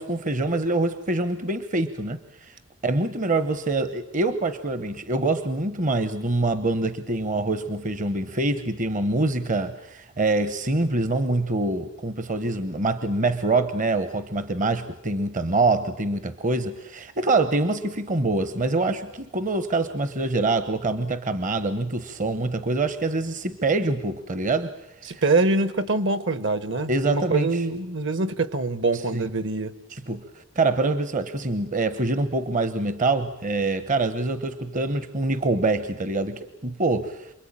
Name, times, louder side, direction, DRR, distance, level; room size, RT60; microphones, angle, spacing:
voice 1, 0.0-2.5 2.8-24.7 25.1-25.2 26.9-27.6 29.1-29.3 29.9-30.2 30.6-37.3, right 2 dB, 35° right, 1.0 m, -25 dB
voice 2, 25.1-29.7, right 3 dB, 60° right, 1.4 m, -24 dB
28.5 x 22.0 x 8.8 m
head